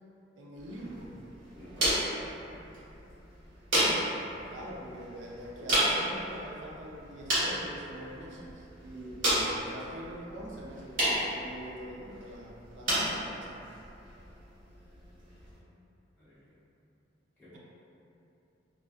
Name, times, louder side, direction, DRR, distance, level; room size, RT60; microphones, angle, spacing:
voice 1, 0.4-1.2 4.5-13.7, equal, 70° right, -3 dB, 0.4 m, -44 dB
sound 1, 0.6-15.6, right 1 dB, 90° right, 1.0 m, -33 dB
voice 2, 1.5-3.0 16.2-16.6 17.4-17.6, equal, 10° left, -14 dB, 0.8 m, -54 dB
2.4 x 2.2 x 2.4 m, 2.8 s
head